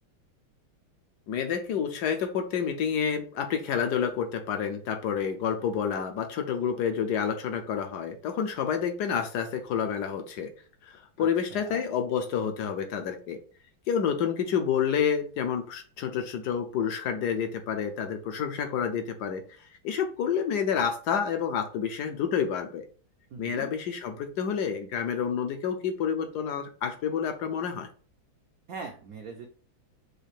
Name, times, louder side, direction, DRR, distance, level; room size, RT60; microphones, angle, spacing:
voice 1, 1.3-10.5 10.8-13.4 13.9-22.8 23.4-27.9, left 7 dB, 75° left, 6 dB, 0.9 m, -29 dB
voice 2, 11.2-11.8 23.3-23.7 28.7-29.5, right 5 dB, 85° right, 3 dB, 0.7 m, -41 dB
6.3 x 2.5 x 3.3 m, 0.41 s
omnidirectional pair, 2.3 m